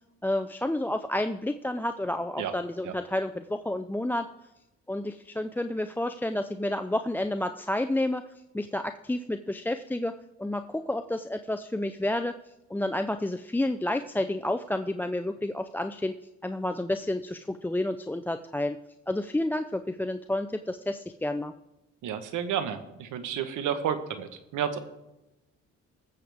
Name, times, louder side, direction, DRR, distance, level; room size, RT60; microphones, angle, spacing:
voice 1, 0.2-4.3 4.9-8.2 8.5-12.3 12.7-16.1 16.4-18.8 19.1-21.5, left 1 dB, 5° left, 8 dB, 0.4 m, -30 dB
voice 2, 22.0-24.8, right 8 dB, 80° right, 10 dB, 1.2 m, -31 dB
20.0 x 7.8 x 3.5 m, 0.94 s
cardioid pair, 90°, 30 cm